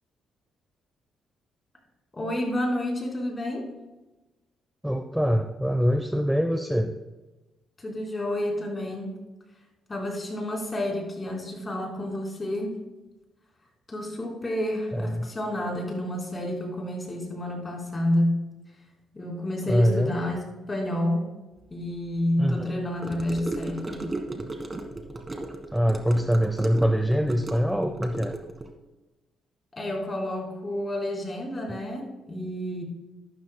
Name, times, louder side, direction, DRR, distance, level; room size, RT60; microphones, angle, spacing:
voice 1, 2.1-3.7 7.8-9.1 9.9-12.8 13.9-18.5 19.1-20.4 20.7-21.3 21.7-24.1 29.7-32.8, left 1 dB, 25° left, -1 dB, 3.9 m, -29 dB
voice 2, 4.8-6.9 14.9-15.3 19.7-20.1 22.4-22.8 25.7-28.4, equal, 5° right, 6 dB, 0.7 m, -24 dB
Gurgling / Car passing by / Sink (filling or washing), 23.0-28.7, right 2 dB, 25° right, 1.6 m, -35 dB
12.5 x 12.0 x 2.2 m, 1.1 s
cardioid pair, 90°, 0 cm